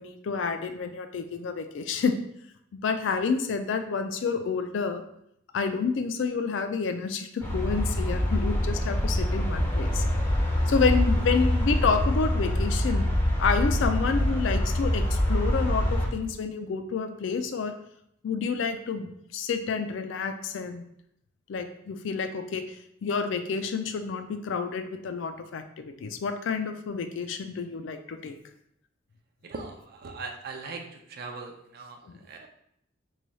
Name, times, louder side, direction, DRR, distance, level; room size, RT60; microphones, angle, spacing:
voice 1, 0.0-2.1 2.7-5.0 5.5-10.0 10.7-13.0 13.4-17.7 18.2-20.8 21.5-22.6 23.0-28.4 32.1-32.2, left 5 dB, 70° left, 8 dB, 0.3 m, -29 dB
sound 1, 7.4-16.1, left 1 dB, 10° left, 0.5 m, -25 dB
voice 2, 29.5-30.8 31.1-32.0 32.3-32.5, right 4 dB, 50° right, 3 dB, 0.5 m, -39 dB
3.2 x 2.3 x 3.9 m, 0.75 s
head